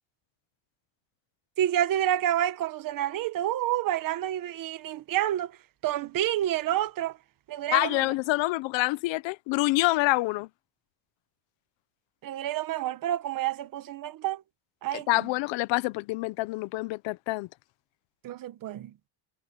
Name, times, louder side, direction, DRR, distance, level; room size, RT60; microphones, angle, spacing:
voice 1, 1.6-5.6 5.8-7.2 7.5-8.1 12.2-14.4 14.8-15.3 18.2-18.9, right 12 dB, 45° right, 1.4 m, -29 dB
voice 2, 7.7-10.5 14.9-17.5, left 20 dB, 65° left, 0.8 m, -26 dB
cardioid pair, 170°, 48 cm